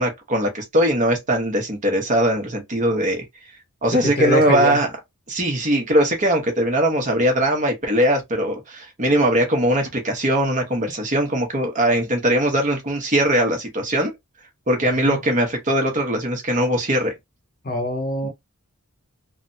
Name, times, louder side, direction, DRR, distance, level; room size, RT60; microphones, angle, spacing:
voice 1, 0.0-3.2 3.8-4.9 5.3-14.1 14.7-17.1, right 1 dB, 35° right, 1.0 m, -20 dB
voice 2, 3.9-4.8 14.8-15.2 17.6-18.3, equal, 40° left, 0.9 m, -24 dB
3.2 x 2.1 x 2.6 m
head